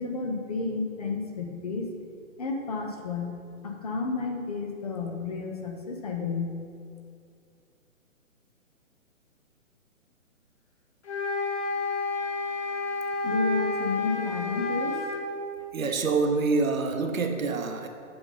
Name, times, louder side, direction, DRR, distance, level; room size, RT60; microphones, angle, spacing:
voice 1, 0.0-1.9 2.4-3.3 3.6-6.6 13.2-15.0, left 4 dB, 30° left, 3 dB, 0.7 m, -31 dB
sound 1, 11.0-15.2, left 3 dB, 55° left, 1.9 m, -30 dB
voice 2, 15.7-17.9, right 4 dB, 75° right, 5 dB, 1.1 m, -26 dB
7.8 x 5.4 x 5.5 m, 2.4 s
hypercardioid pair, 155°, 41 cm